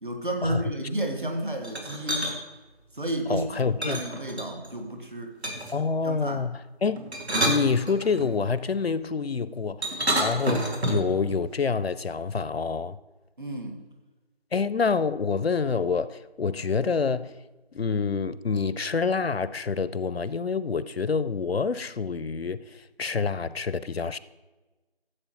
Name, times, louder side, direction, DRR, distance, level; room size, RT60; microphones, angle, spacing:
voice 1, 0.0-2.3 2.9-5.3 6.0-6.4 13.4-13.8, right 1 dB, 50° right, 1.5 m, -31 dB
sound 1, 1.6-2.3 3.8-4.7 5.4-5.8 7.0-8.3 9.8-11.1, right 1 dB, 80° right, 2.1 m, -28 dB
voice 2, 3.3-4.0 5.7-7.0 7.4-13.0 14.5-17.4 17.7-24.2, left 5 dB, 70° left, 0.5 m, -27 dB
14.0 x 7.6 x 3.0 m
figure-of-eight pair, 180°, 32 cm